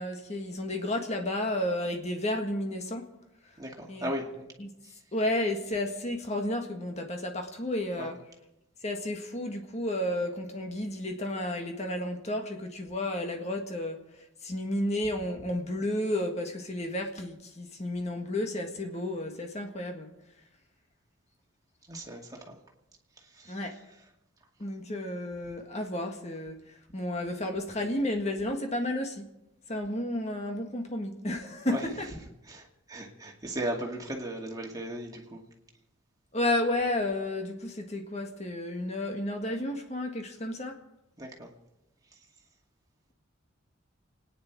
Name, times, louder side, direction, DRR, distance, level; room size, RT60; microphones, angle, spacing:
voice 1, 0.0-3.1 3.9-4.1 4.6-4.7 5.1-8.2 8.8-14.0 14.4-20.1 23.5-23.8 24.6-26.6 26.9-29.3 29.7-32.1 36.3-40.8, left 1 dB, 35° left, 1.8 m, -32 dB
voice 2, 3.6-4.5 8.0-8.1 21.9-22.6 23.4-23.5 31.7-31.8 32.5-35.4 41.2-41.5, right 1 dB, 20° right, 2.2 m, -36 dB
29.0 x 9.9 x 4.7 m
head